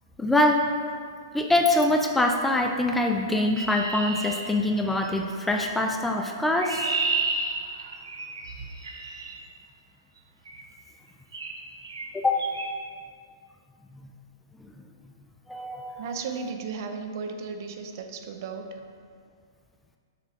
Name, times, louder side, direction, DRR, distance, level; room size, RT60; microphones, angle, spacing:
voice 1, 0.2-0.7 1.3-6.9 12.1-12.5 14.6-14.7 15.5-16.0, left 1 dB, 5° left, 3 dB, 0.3 m, -24 dB
Chirp tweet, 3.6-5.2 6.2-9.4 10.5-10.7 11.3-11.6 11.8-12.1 12.4-12.7, right 3 dB, 85° right, 0.8 m, -31 dB
voice 2, 16.0-18.8, right 5 dB, 50° right, 5 dB, 0.6 m, -35 dB
6.6 x 3.1 x 4.9 m, 2.1 s
hypercardioid pair, 130°, 2 cm